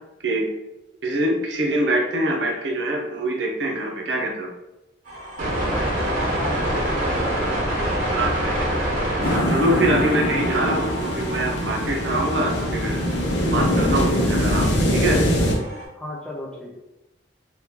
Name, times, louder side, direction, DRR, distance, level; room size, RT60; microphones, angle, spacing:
voice 1, 1.0-4.5 8.1-8.5 9.3-13.0 13.4-15.2, right 1 dB, 70° right, 0 dB, 0.7 m, -24 dB
sound 1, 5.1-15.9, right 1 dB, 45° right, 1.0 m, -28 dB
voice 2, 5.6-8.6 15.9-16.7, left 1 dB, 5° left, -5 dB, 0.6 m, -37 dB
sound 2, 9.2-15.5, equal, 65° left, 0.6 m, -22 dB
2.9 x 2.3 x 3.6 m, 0.97 s
head